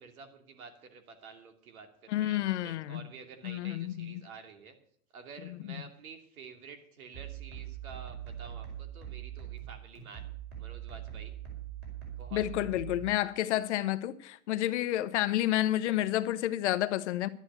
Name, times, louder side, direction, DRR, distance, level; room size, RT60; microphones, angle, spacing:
voice 1, 0.0-4.8 5.1-10.3 10.6-11.3 12.2-12.4, right 5 dB, 75° right, 2.7 m, -50 dB
voice 2, 2.1-3.0 3.4-4.1 12.3-17.3, left 14 dB, 55° left, 0.8 m, -30 dB
sound 1, 7.1-13.1, right 11 dB, 35° right, 5.2 m, -42 dB
11.5 x 10.0 x 6.8 m
hypercardioid pair, 145°, 43 cm